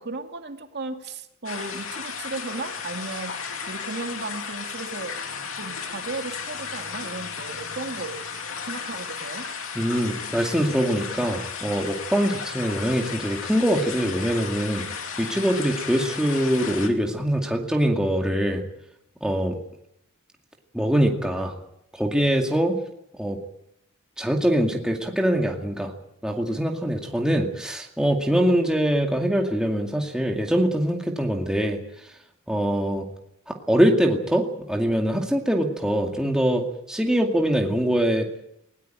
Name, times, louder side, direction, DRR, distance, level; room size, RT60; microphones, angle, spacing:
voice 1, 0.0-3.3 3.7-5.1 5.5-8.2 8.7-9.4, right 3 dB, 50° right, 4 dB, 2.6 m, -35 dB
sound 1, 1.4-16.9, left 6 dB, 70° left, 2.7 m, -34 dB
voice 2, 9.7-14.9 15.2-18.6 19.2-19.6 20.7-21.6 21.9-22.8 23.2-23.4 24.2-25.9 26.2-31.8 32.5-33.1 33.5-38.3, equal, 5° right, 1 dB, 2.3 m, -23 dB
20.0 x 18.5 x 9.1 m, 0.80 s
head